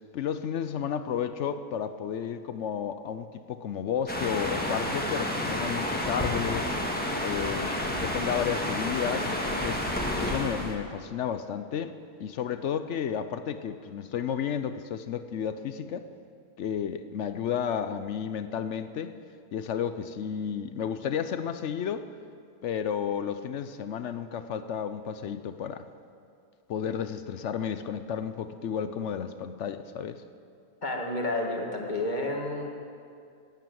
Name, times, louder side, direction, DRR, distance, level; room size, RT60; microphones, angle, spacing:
voice 1, 0.1-6.7 7.2-9.8 10.2-11.9 12.2-16.1 16.6-19.1 19.5-22.1 22.6-25.9 26.7-30.2, left 8 dB, 65° left, 11 dB, 0.7 m, -32 dB
sound 1, 4.1-10.7, left 1 dB, 5° left, 1.6 m, -30 dB
voice 2, 30.8-32.7, left 2 dB, 30° left, 0 dB, 1.8 m, -30 dB
13.5 x 9.3 x 9.1 m, 2.4 s
omnidirectional pair, 1.7 m